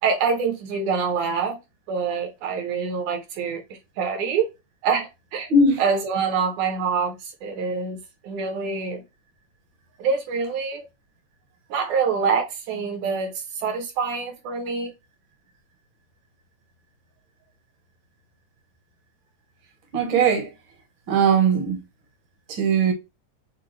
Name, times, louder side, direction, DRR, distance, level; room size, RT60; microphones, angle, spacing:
voice 1, 0.0-1.6 1.9-4.5 4.8-5.5 5.8-9.0 10.0-10.9 11.7-14.9, right 5 dB, 75° right, 2.5 m, -25 dB
voice 2, 19.9-20.5 21.1-21.8 22.5-22.9, right 4 dB, 55° right, 1.5 m, -19 dB
6.6 x 2.4 x 3.1 m
omnidirectional pair, 3.6 m